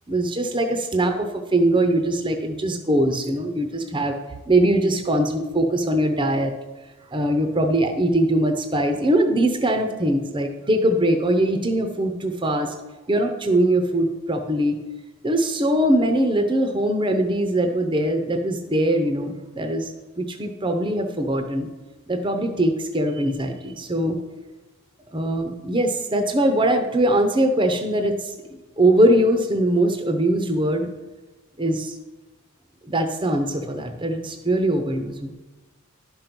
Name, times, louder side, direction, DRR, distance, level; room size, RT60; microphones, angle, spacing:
voice 1, 0.1-4.2 4.5-6.5 7.1-12.7 13.1-14.8 15.2-21.7 22.1-24.2 25.1-28.3 28.8-30.9 31.6-32.0 32.8-35.3, right 1 dB, 20° right, 5 dB, 0.7 m, -21 dB
11.0 x 5.2 x 6.0 m, 1.1 s
head